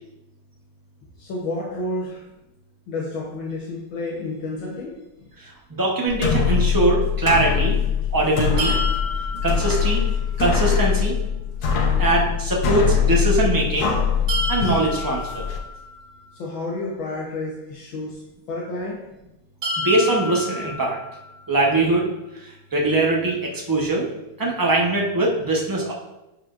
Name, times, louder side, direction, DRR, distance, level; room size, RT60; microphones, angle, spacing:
voice 1, 1.2-2.2 2.9-5.3 16.3-18.2 18.5-19.0, left 2 dB, 75° left, -3 dB, 1.8 m, -30 dB
voice 2, 5.4-7.8 8.1-8.7 9.4-10.0 10.4-11.1 12.0-14.0 14.5-15.5 19.8-21.0 21.5-22.1 22.4-24.1 24.4-25.9, right 2 dB, 35° right, -2 dB, 0.3 m, -22 dB
sound 1, 6.1-15.6, left 7 dB, 60° left, 1.2 m, -22 dB
sound 2, 8.6-10.5 14.3-16.3 19.6-21.6, left 1 dB, 80° right, 2.4 m, -31 dB
10.5 x 4.9 x 2.5 m, 0.94 s
omnidirectional pair, 2.2 m